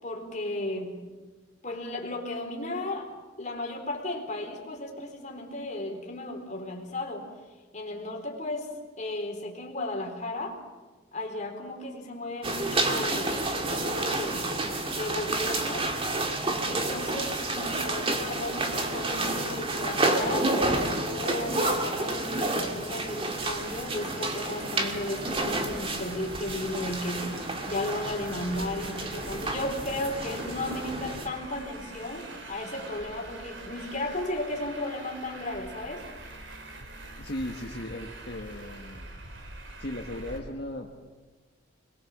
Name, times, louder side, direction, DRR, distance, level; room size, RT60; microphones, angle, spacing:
voice 1, 0.0-1.0 1.6-7.3 7.7-8.7 9.0-10.6 11.1-14.5 14.9-15.9 16.7-20.6 20.8-36.1, left 1 dB, 35° left, 1 dB, 4.0 m, -35 dB
sound 1, 12.4-31.3, right 2 dB, 25° right, 2.1 m, -30 dB
Traffic noise roadway noise, 23.3-40.4, right 2 dB, 60° right, 3.4 m, -44 dB
voice 2, 37.2-39.1 39.8-40.9, left 1 dB, 50° left, 1 dB, 1.6 m, -37 dB
25.0 x 22.0 x 7.4 m, 1.3 s
head